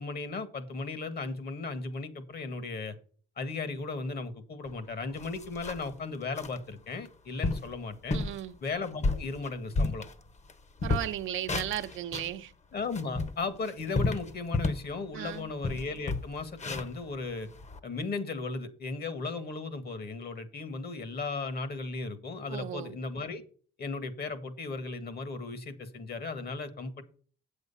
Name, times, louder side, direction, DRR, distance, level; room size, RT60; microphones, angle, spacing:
voice 1, 0.0-2.9 3.4-8.2 8.6-10.0 12.7-17.5 17.8-23.4 23.8-27.0, left 3 dB, 50° left, 1.8 m, -36 dB
sound 1, 4.7-4.8 5.2-5.9 6.4-6.6 7.1-7.2 7.4-7.7 8.1-8.4 8.8-10.5 10.8-12.3 12.8-14.9 15.3-15.4 15.6-17.8, left 3 dB, 35° left, 1.1 m, -31 dB
voice 2, 8.1-8.5 10.8-12.5 15.1-15.5 22.5-23.0, right 12 dB, 80° right, 0.8 m, -35 dB
8.0 x 7.9 x 5.6 m
cardioid pair, 90°, 20 cm